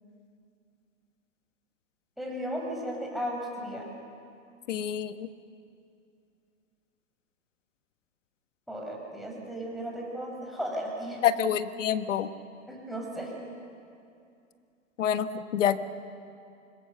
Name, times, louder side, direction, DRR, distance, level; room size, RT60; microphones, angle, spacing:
voice 1, 2.2-3.9 8.7-11.2 12.7-13.3, equal, ahead, -2 dB, 5.9 m, -35 dB
voice 2, 4.7-5.3 11.2-12.3 15.0-15.8, left 9 dB, 65° left, 11 dB, 1.4 m, -27 dB
26.0 x 21.5 x 6.9 m, 2.5 s
hypercardioid pair, 110°, 40 cm